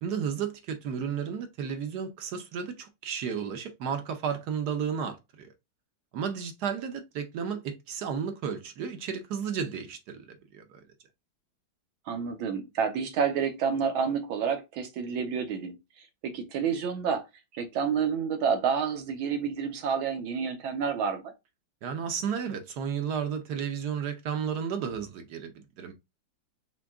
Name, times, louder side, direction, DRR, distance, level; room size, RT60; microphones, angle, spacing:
voice 1, 0.0-5.5 6.1-10.8 21.8-25.9, right 7 dB, 65° right, 1.1 m, -33 dB
voice 2, 12.1-15.8 16.2-17.2 17.5-21.3, right 6 dB, 80° right, 1.7 m, -29 dB
5.9 x 2.2 x 3.6 m
omnidirectional pair, 2.2 m